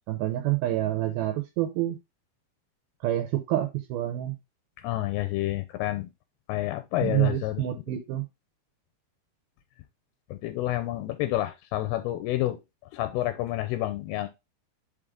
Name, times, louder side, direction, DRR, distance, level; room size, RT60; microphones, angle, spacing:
voice 1, 0.1-2.0 3.0-4.4 7.0-8.2, right 14 dB, 80° right, 2.5 m, -27 dB
voice 2, 4.8-6.1 6.5-7.6 10.3-12.6 12.9-14.3, left 15 dB, 80° left, 2.6 m, -29 dB
5.5 x 5.0 x 3.6 m
omnidirectional pair, 4.6 m